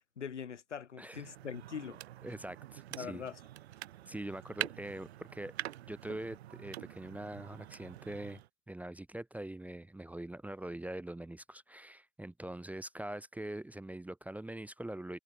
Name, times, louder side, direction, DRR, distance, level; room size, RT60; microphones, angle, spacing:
voice 1, 0.2-2.0 3.0-3.4, left 7 dB, 80° left, 1.3 m, -42 dB
sound 1, 1.1-8.5, right 13 dB, 60° right, 4.8 m, -45 dB
voice 2, 2.2-3.2 4.1-5.5 5.9-8.4 8.7-15.2, right 1 dB, 5° right, 0.8 m, -43 dB
figure-of-eight pair, 80°, 35 cm